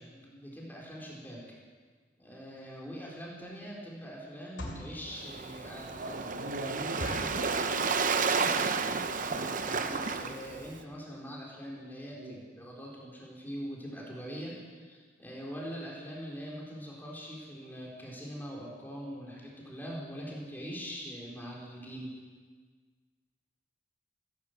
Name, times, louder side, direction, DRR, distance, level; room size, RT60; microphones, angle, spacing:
voice 1, 0.1-1.4 2.2-6.2 6.5-6.6 9.2-22.1, equal, 10° left, -4 dB, 3.8 m, -43 dB
sound 1, 2.8-2.9 3.4-3.6 4.3-5.0 5.5-5.6 6.0-6.1 6.4-6.5 7.0-7.5 8.1-8.4 8.6-8.7 9.0-9.2 9.8-9.9 10.1-10.3 10.6-10.7 10.9-11.0, left 1 dB, 70° left, 2.8 m, -40 dB
Waves surf, 5.1-10.8, right 5 dB, 45° right, 0.8 m, -31 dB
voice 2, 5.9-8.4 12.1-12.4, right 1 dB, 65° right, -1 dB, 3.0 m, -42 dB
16.0 x 11.5 x 7.8 m, 1.5 s
head